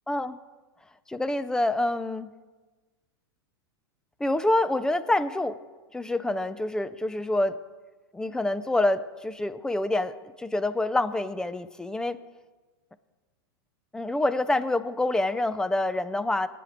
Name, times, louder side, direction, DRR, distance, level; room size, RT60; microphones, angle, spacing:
voice 1, 0.1-0.4 1.1-2.3 4.2-5.6 5.9-7.6 8.1-12.2 13.9-16.5, left 2 dB, 5° left, 14 dB, 0.4 m, -27 dB
18.0 x 9.2 x 3.4 m, 1.3 s
supercardioid pair, 130°, 13 cm